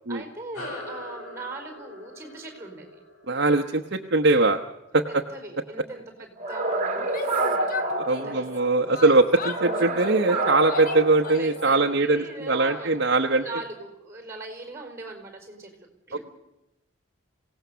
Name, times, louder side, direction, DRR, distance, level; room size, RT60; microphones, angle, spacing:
voice 1, 0.1-3.0 5.0-8.7 11.4-16.2, right 2 dB, 15° right, 5 dB, 4.6 m, -40 dB
sound 1, 0.5-5.4, left 2 dB, 85° left, 7.3 m, -43 dB
voice 2, 3.3-4.6 4.9-5.2 8.1-13.4, right 2 dB, 55° right, 4 dB, 1.0 m, -21 dB
sound 2, 6.4-8.8 9.4-11.8, right 2 dB, 35° right, 2.0 m, -28 dB
Yell, 7.0-8.6 8.9-11.7, left 4 dB, 40° left, 1.1 m, -38 dB
26.5 x 17.5 x 6.9 m, 0.94 s
head